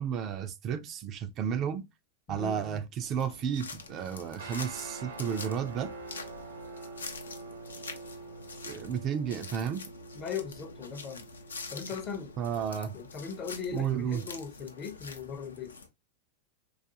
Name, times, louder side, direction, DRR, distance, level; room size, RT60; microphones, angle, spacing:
voice 1, 0.0-1.8 2.3-5.9 8.7-9.8 12.4-12.9 13.7-14.2, right 8 dB, 40° right, 0.4 m, -32 dB
voice 2, 2.3-2.8 10.1-11.3 11.7-12.3 12.9-15.7, left 6 dB, 35° left, 0.6 m, -39 dB
sound 1, 3.0-15.9, left 4 dB, 85° left, 0.4 m, -46 dB
sound 2, 4.3-14.8, right 3 dB, 75° right, 0.9 m, -47 dB
2.4 x 2.3 x 2.6 m
figure-of-eight pair, 95°, 0 cm